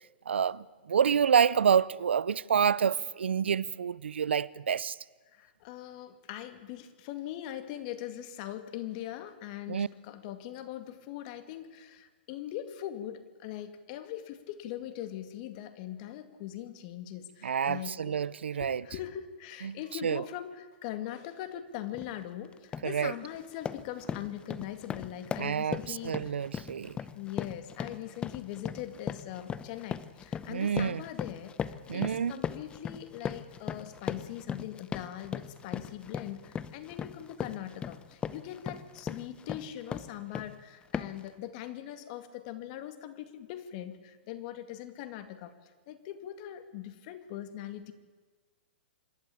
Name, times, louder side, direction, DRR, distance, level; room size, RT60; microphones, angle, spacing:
voice 1, 0.3-5.0 9.7-9.9 17.4-18.8 19.6-20.2 22.8-23.1 25.4-27.0 30.5-31.0 31.9-32.4, right 7 dB, 90° right, 0.6 m, -28 dB
voice 2, 5.3-18.2 18.5-26.3 27.1-47.9, left 12 dB, 45° left, 2.2 m, -41 dB
sound 1, 21.9-22.1 22.5-22.9 23.3-40.6 40.9-41.3, left 7 dB, 15° left, 0.7 m, -38 dB
26.5 x 12.0 x 8.5 m
hypercardioid pair, 135°, 6 cm